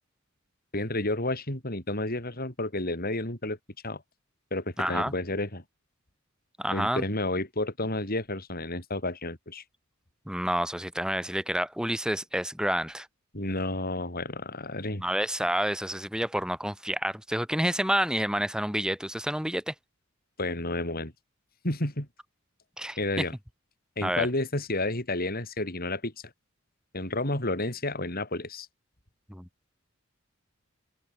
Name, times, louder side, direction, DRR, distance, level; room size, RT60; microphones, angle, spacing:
voice 1, 0.7-3.6 3.8-4.0 4.5-5.6 6.7-9.6 13.3-15.0 20.4-21.1 21.6-22.1 23.0-23.3 24.0-26.1 26.9-28.7, left 2 dB, 45° left, 6.7 m, -31 dB
voice 2, 4.8-5.1 6.6-7.0 10.3-13.1 15.0-19.7 22.8-23.2 24.0-24.3 29.3-29.5, equal, 5° right, 3.8 m, -29 dB
open air
head